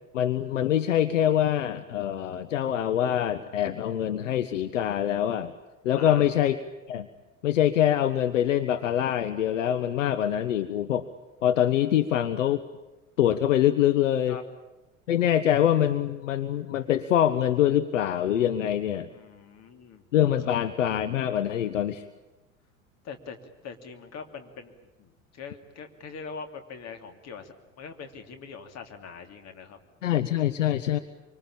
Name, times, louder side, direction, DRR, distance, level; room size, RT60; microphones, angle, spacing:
voice 1, 0.1-5.5 5.8-6.6 6.9-7.1 7.4-11.1 11.4-12.7 13.2-14.4 15.1-19.1 20.1-22.0 30.0-31.0, left 11 dB, 70° left, 11 dB, 1.1 m, -24 dB
voice 2, 5.9-6.3 14.3-14.4 19.1-20.0 20.4-20.5 23.0-23.4 23.6-24.7 25.0-29.8, left 5 dB, 40° left, 6 dB, 2.9 m, -42 dB
25.5 x 25.0 x 8.8 m, 1.0 s
figure-of-eight pair, 70°, 40 cm